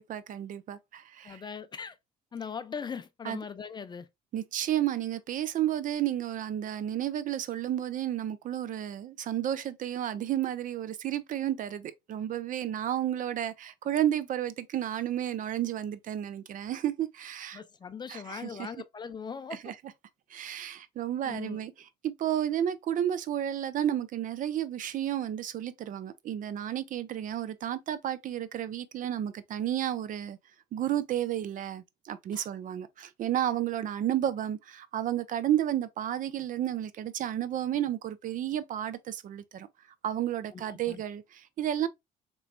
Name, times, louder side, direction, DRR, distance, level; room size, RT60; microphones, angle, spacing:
voice 1, 0.0-1.4 3.2-3.4 4.3-17.6 18.1-18.7 19.5-19.7 20.3-30.4 30.7-39.7 40.0-41.9, right 11 dB, 50° right, 0.5 m, -32 dB
voice 2, 1.2-2.0 2.3-4.1 17.5-19.7 21.2-21.6 32.3-32.5 40.5-41.0, left 6 dB, 25° left, 0.4 m, -40 dB
4.2 x 3.1 x 2.4 m
cardioid pair, 110°, 17 cm